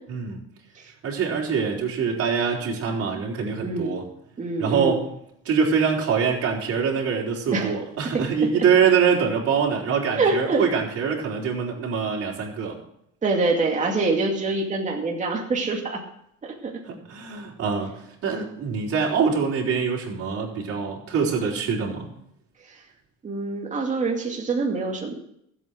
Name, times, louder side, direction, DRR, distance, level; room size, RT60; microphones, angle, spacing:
voice 1, 1.0-4.0 4.6-5.1 5.4-12.7 16.8-17.9 18.2-22.1, right 6 dB, 45° right, -1 dB, 4.3 m, -24 dB
voice 2, 3.6-4.0 4.4-5.0 7.5-7.7 8.1-8.3 10.2-10.7 13.2-16.0 16.4-16.8 23.2-25.1, right 3 dB, 25° right, 0 dB, 2.4 m, -25 dB
14.5 x 8.5 x 6.4 m, 0.74 s
cardioid pair, 125°, 31 cm